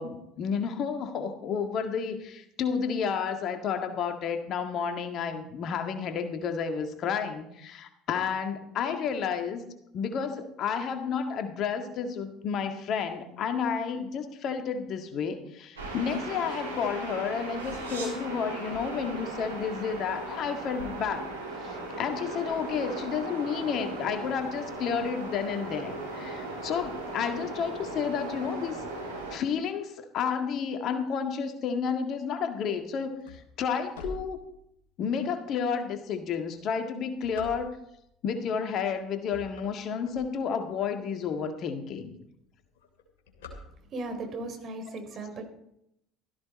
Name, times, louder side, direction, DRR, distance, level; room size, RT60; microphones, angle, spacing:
voice 1, 0.0-9.6 9.9-21.3 21.6-28.9 29.3-34.4 35.0-37.8 38.2-42.1, left 6 dB, 50° left, 7 dB, 1.8 m, -31 dB
sound 1, 15.8-29.4, right 2 dB, 85° right, 3.4 m, -37 dB
sound 2, 32.8-35.0 35.6-35.7 36.4-38.1 38.7-38.9 39.2-40.8 41.3-41.4 41.6-41.7 42.0-42.3 42.6-44.2, left 2 dB, 70° left, 3.3 m, -45 dB
voice 2, 43.9-45.4, right 2 dB, 45° right, 4 dB, 3.8 m, -36 dB
16.0 x 14.0 x 4.2 m, 0.77 s
figure-of-eight pair, 60°, 0 cm